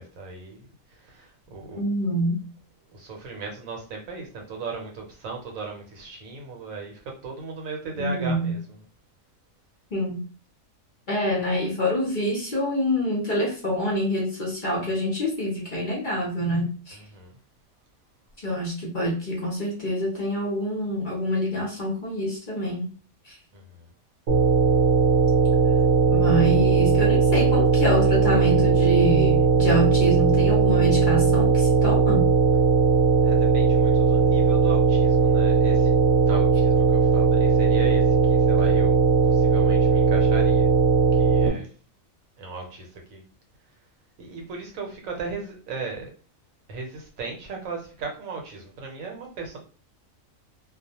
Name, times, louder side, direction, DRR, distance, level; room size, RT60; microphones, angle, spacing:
voice 1, 0.0-1.8 2.9-8.6 16.9-17.4 23.5-23.9 33.2-35.9 36.3-39.0 39.2-40.7 41.1-41.7 42.4-43.2 44.2-46.1 46.7-49.6, right 4 dB, 80° right, 2 dB, 1.1 m, -37 dB
voice 2, 1.8-2.5 8.0-8.5 9.9-10.2 11.1-16.9 18.4-22.9 23.3-23.4 26.1-32.3, equal, 45° left, -3 dB, 0.7 m, -26 dB
sound 1, 24.3-41.5, right 5 dB, 60° right, 0.8 m, -19 dB
2.4 x 2.2 x 2.8 m, 0.38 s
omnidirectional pair, 1.4 m